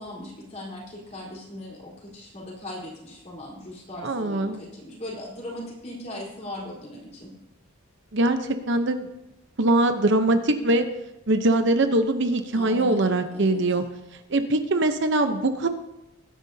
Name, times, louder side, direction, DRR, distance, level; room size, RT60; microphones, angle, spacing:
voice 1, 0.0-7.3 12.5-13.6, left 1 dB, 30° left, -4 dB, 4.3 m, -39 dB
voice 2, 4.0-4.6 8.1-9.1 9.6-10.9 11.3-13.8 14.3-15.7, right 2 dB, 55° right, 7 dB, 0.9 m, -22 dB
20.5 x 10.5 x 2.8 m, 0.92 s
head